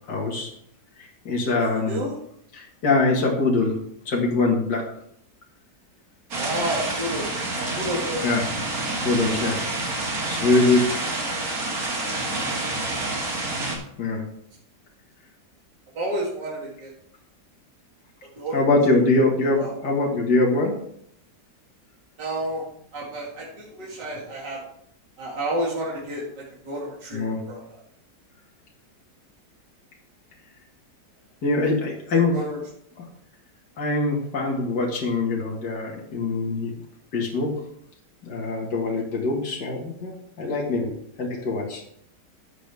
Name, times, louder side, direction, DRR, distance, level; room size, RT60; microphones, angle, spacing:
voice 1, 0.1-0.5 1.0-2.0 2.5-3.8 4.1-4.9 8.2-8.4 9.0-9.6 10.3-10.9 14.0-14.2 18.5-20.8 27.1-27.4 31.4-32.3 33.0-33.1 33.8-36.7 37.1-37.6 38.2-40.8 41.2-41.8, left 3 dB, 70° left, -1 dB, 2.4 m, -23 dB
voice 2, 1.6-2.1 6.3-8.3 12.3-12.4 15.9-16.9 18.4-18.6 19.6-19.7 22.2-22.6 22.9-24.6 25.2-27.8 32.3-32.6, right 1 dB, 75° right, -5 dB, 2.9 m, -31 dB
sound 1, 6.3-13.8, right 2 dB, 55° right, 2.4 m, -28 dB
12.0 x 8.3 x 3.5 m, 0.69 s
omnidirectional pair, 1.9 m